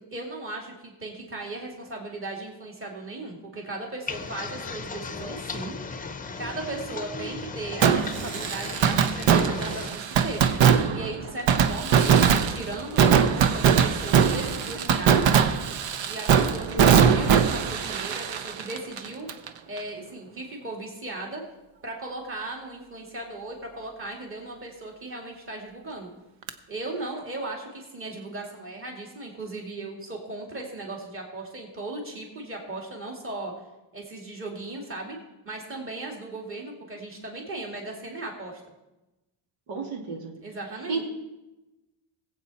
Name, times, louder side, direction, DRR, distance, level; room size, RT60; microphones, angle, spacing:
voice 1, 0.0-5.8 6.4-15.2 16.0-19.3 19.6-21.4 21.8-26.1 26.7-33.5 33.9-35.2 35.4-38.6 40.4-41.0, right 2 dB, 25° right, 0 dB, 2.5 m, -37 dB
sound 1, 4.1-9.9, left 4 dB, 15° left, 0.7 m, -36 dB
Fireworks, 7.8-19.5 19.8-19.9 26.5-26.6, right 7 dB, 65° right, 0.9 m, -21 dB
voice 2, 39.7-40.3 40.9-41.0, right 3 dB, 90° right, 1 dB, 2.5 m, -32 dB
20.0 x 8.2 x 4.2 m, 1.0 s
cardioid pair, 145°, 48 cm